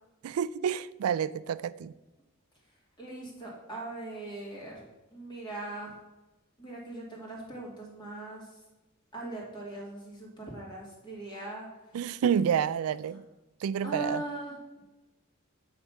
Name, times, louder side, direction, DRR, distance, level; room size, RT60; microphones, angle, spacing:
voice 1, 0.2-1.9 11.9-13.2 13.6-14.2, right 8 dB, 85° right, 0.3 m, -29 dB
voice 2, 3.0-4.9 5.1-5.9 6.6-8.5 9.1-11.7 13.8-14.6, right 2 dB, 20° left, 2.3 m, -40 dB
8.2 x 3.3 x 5.8 m
head